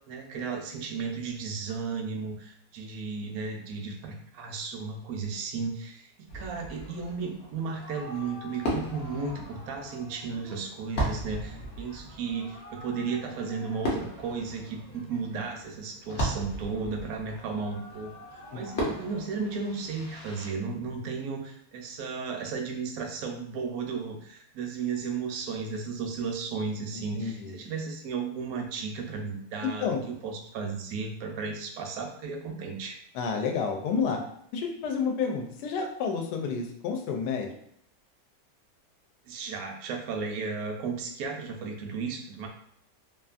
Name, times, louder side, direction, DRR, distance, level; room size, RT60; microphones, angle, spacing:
voice 1, 0.1-6.1 6.3-29.9 30.2-33.0 39.2-42.5, right 5 dB, 70° right, 2 dB, 0.9 m, -34 dB
Fireworks, 6.3-20.5, right 1 dB, 55° left, 0.8 m, -37 dB
voice 2, 18.5-18.9 26.9-27.6 29.6-30.0 33.1-34.2 34.5-37.5, left 5 dB, 80° left, 3 dB, 1.1 m, -30 dB
2.8 x 2.4 x 2.4 m, 0.69 s
omnidirectional pair, 1.8 m